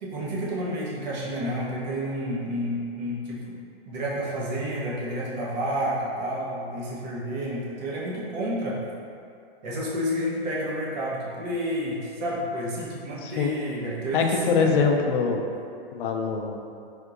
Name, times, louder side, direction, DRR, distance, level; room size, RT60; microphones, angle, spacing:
voice 1, 0.0-3.6 3.9-8.8 9.6-14.7, equal, 45° right, -5 dB, 0.8 m, -30 dB
voice 2, 13.2-13.5 14.1-15.4 15.9-16.6, left 5 dB, 55° left, 2 dB, 0.4 m, -23 dB
3.5 x 2.8 x 2.4 m, 2.5 s
hypercardioid pair, 150°, 31 cm